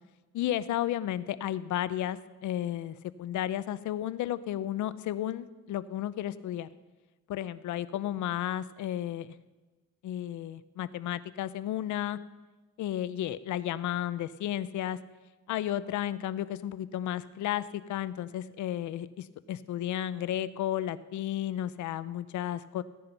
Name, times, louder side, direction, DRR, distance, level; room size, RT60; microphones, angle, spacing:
voice 1, 0.3-6.7 7.3-9.3 10.0-12.2 12.8-15.0 15.5-22.8, left 12 dB, 75° left, 16 dB, 0.7 m, -33 dB
15.5 x 10.5 x 5.3 m, 1.2 s
cardioid pair, 90°, 30 cm